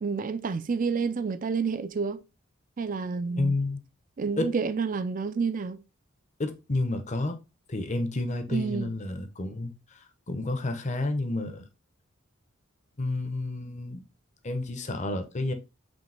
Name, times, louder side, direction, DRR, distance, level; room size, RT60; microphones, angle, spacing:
voice 1, 0.0-2.2 2.8-3.5 4.2-5.8 8.5-8.9, right 5 dB, 40° right, 0.4 m, -29 dB
voice 2, 3.4-3.8 4.4-4.5 6.4-7.4 7.7-9.7 10.3-11.6 13.0-14.1 14.4-15.5, left 2 dB, 35° left, 0.7 m, -30 dB
5.2 x 3.1 x 3.3 m
head